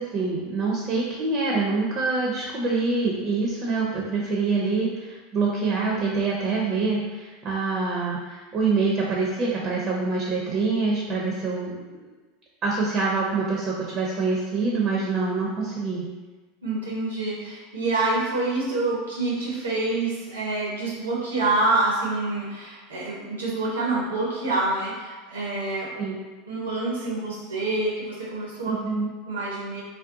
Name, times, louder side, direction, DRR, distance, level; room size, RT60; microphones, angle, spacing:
voice 1, 0.0-12.1 12.6-16.0 26.0-26.2 28.7-29.1, right 4 dB, 40° right, -3 dB, 0.5 m, -25 dB
voice 2, 16.6-25.9 26.5-28.8 29.3-29.8, right 2 dB, 85° right, -5 dB, 0.6 m, -27 dB
2.5 x 2.2 x 2.5 m, 1.3 s
hypercardioid pair, 80°, 0 cm